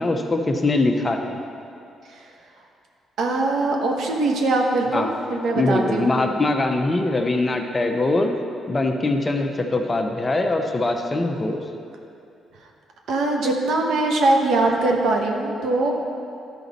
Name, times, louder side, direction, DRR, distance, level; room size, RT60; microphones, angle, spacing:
voice 1, 0.0-1.4 4.9-5.1 5.5-8.3 8.7-11.6, left 2 dB, 25° left, 3 dB, 0.7 m, -22 dB
voice 2, 3.2-6.2 13.1-15.9, right 2 dB, 70° right, 1 dB, 1.0 m, -21 dB
12.0 x 5.0 x 4.1 m, 2.6 s
cardioid pair, 90°, 0 cm